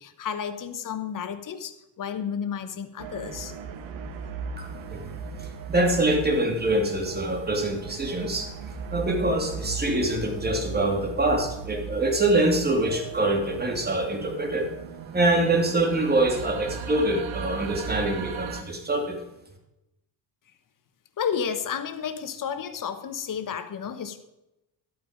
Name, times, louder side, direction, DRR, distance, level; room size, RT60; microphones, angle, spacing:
voice 1, 0.0-3.5 21.2-24.2, left 7 dB, 45° left, 9 dB, 1.2 m, -32 dB
sound 1, 3.0-18.6, right 5 dB, 80° right, 1.4 m, -37 dB
voice 2, 4.6-5.1 5.4-8.5 8.9-14.7 15.1-19.2, right 2 dB, 20° right, 2 dB, 2.6 m, -25 dB
12.0 x 8.6 x 5.2 m, 0.92 s
cardioid pair, 120°, 45 cm